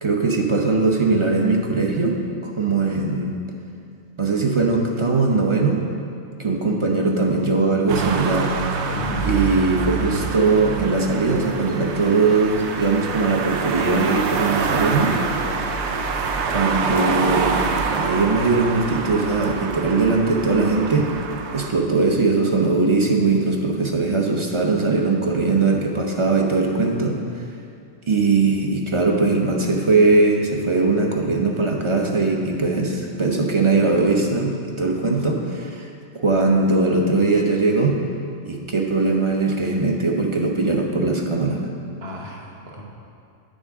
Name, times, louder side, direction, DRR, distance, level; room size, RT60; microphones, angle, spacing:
voice 1, 0.0-2.2 2.4-3.3 4.2-5.8 6.4-8.5 9.2-15.2 16.5-17.6 18.0-21.1 21.5-27.2 28.1-35.9 36.1-38.0 38.4-41.6, right 3 dB, 35° right, 1 dB, 0.6 m, -20 dB
sound 1, 7.9-21.7, right 4 dB, 75° right, 0.9 m, -26 dB
voice 2, 8.9-9.3 27.2-27.3 42.0-42.8, right 1 dB, 60° right, -2 dB, 1.4 m, -34 dB
9.2 x 6.3 x 3.6 m, 2.4 s
omnidirectional pair, 1.2 m